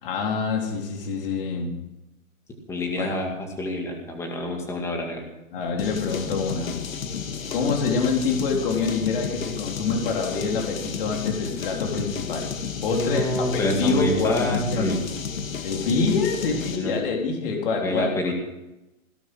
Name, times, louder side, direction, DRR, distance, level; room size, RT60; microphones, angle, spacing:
voice 1, 0.0-1.7 3.0-3.2 5.5-6.8 7.5-12.5 12.8-15.0 15.6-18.3, left 4 dB, 40° left, 1 dB, 3.7 m, -26 dB
voice 2, 2.7-5.2 12.9-15.0 16.7-16.9 17.8-18.3, left 1 dB, 5° left, 2 dB, 2.1 m, -27 dB
sound 1, 5.8-16.9, left 6 dB, 65° left, 2.2 m, -32 dB
17.5 x 11.5 x 6.2 m, 0.95 s
hypercardioid pair, 160°, 43 cm